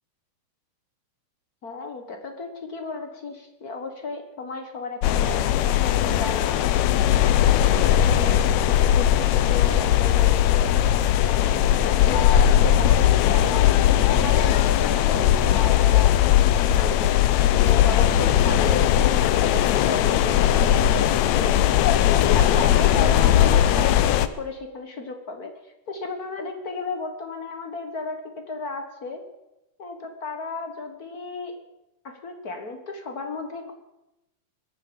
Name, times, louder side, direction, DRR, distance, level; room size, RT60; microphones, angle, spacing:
voice 1, 1.6-6.7 7.3-10.7 11.3-13.8 14.1-16.2 16.6-17.2 17.5-18.9 19.2-25.5 25.9-29.2 29.8-31.5 32.0-33.7, left 3 dB, 45° left, 5 dB, 1.2 m, -34 dB
sound 1, 5.0-24.3, left 11 dB, 75° left, 1.9 m, -19 dB
22.0 x 9.2 x 6.9 m, 0.95 s
omnidirectional pair, 3.5 m